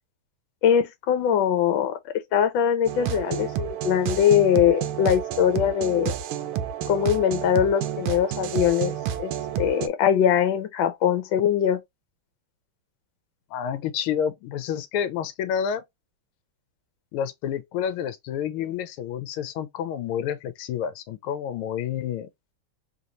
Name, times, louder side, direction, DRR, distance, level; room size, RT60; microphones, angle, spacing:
voice 1, 0.6-1.9 2.3-6.1 6.9-11.8, left 9 dB, 70° left, 1.4 m, -22 dB
sound 1, 2.9-9.9, right 10 dB, 85° right, 1.5 m, -30 dB
voice 2, 13.5-15.8 17.1-22.3, left 8 dB, 90° left, 1.5 m, -29 dB
3.7 x 2.5 x 2.9 m
omnidirectional pair, 2.3 m